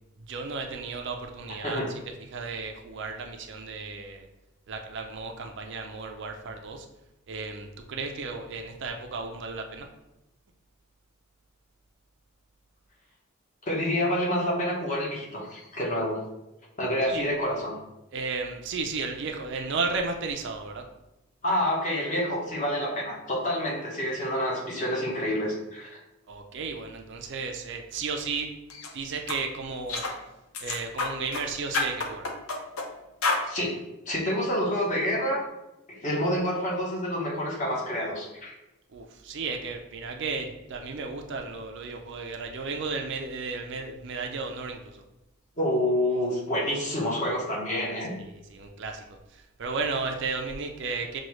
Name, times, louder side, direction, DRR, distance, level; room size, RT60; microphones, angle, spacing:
voice 1, 0.3-1.8 2.3-4.3 4.7-6.9 7.3-9.9 17.1-17.3 18.1-20.8 26.3-28.5 28.9-30.0 30.6-32.3 38.9-45.0 48.2-51.2, right 4 dB, 55° right, 3 dB, 0.4 m, -34 dB
voice 2, 13.7-16.2 16.8-17.7 21.4-25.9 33.4-33.8 34.1-35.5 35.9-38.5 45.6-48.2, equal, 35° left, -4 dB, 1.0 m, -28 dB
sound 1, 28.7-28.9 29.3-29.4 29.9-30.2 30.5-31.5 31.7-32.9 33.2-33.5, left 3 dB, 70° left, 0.6 m, -29 dB
6.2 x 2.3 x 3.0 m, 0.94 s
head